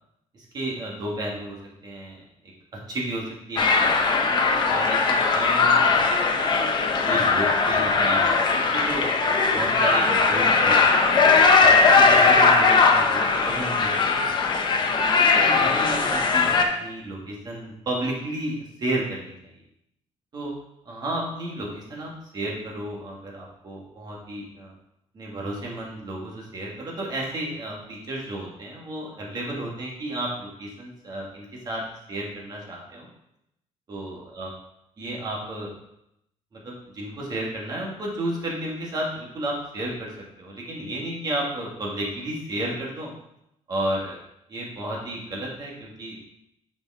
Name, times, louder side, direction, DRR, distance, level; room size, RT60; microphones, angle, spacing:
voice 1, 0.3-1.6 1.8-2.2 2.9-6.1 7.1-9.2 9.5-10.8 11.1-11.3 11.6-14.5 15.3-19.6 20.3-20.5 20.9-24.7 25.1-31.8 32.1-33.1 33.9-34.5 35.0-35.7 36.5-40.1 40.4-43.1 43.7-44.2 44.5-46.2, right 1 dB, 35° right, -3 dB, 2.0 m, -32 dB
sound 1, 3.6-16.6, left 4 dB, 40° left, 0.8 m, -19 dB
6.9 x 5.2 x 3.7 m, 0.81 s
cardioid pair, 135°, 12 cm